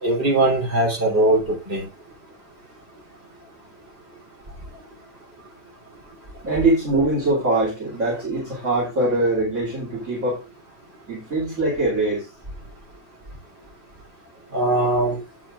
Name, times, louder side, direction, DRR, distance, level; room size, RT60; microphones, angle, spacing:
voice 1, 0.0-1.8 14.5-15.2, right 2 dB, 50° right, 4.1 m, -20 dB
voice 2, 6.4-10.4 11.1-12.2, right 2 dB, 65° right, 3.1 m, -22 dB
12.0 x 8.6 x 2.5 m
omnidirectional pair, 1.4 m